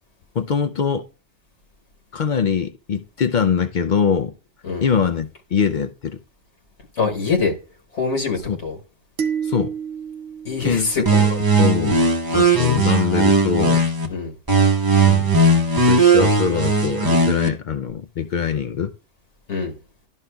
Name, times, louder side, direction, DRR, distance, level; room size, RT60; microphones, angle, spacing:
voice 1, 0.4-1.0 2.1-4.3 4.8-6.2 8.5-8.6 9.4-9.7 10.6-12.0 12.3-13.9 15.0-15.3 15.9-18.9, left 7 dB, 60° left, 0.5 m, -23 dB
voice 2, 7.0-7.5 7.9-8.8 10.4-11.2 14.1-14.3 19.5-19.7, left 4 dB, 75° left, 1.4 m, -24 dB
sound 1, 9.2-11.6, right 7 dB, 85° right, 1.0 m, -30 dB
sound 2, 11.1-14.1 14.5-17.5, right 3 dB, 20° right, 0.7 m, -17 dB
11.5 x 5.5 x 2.2 m
omnidirectional pair, 1.2 m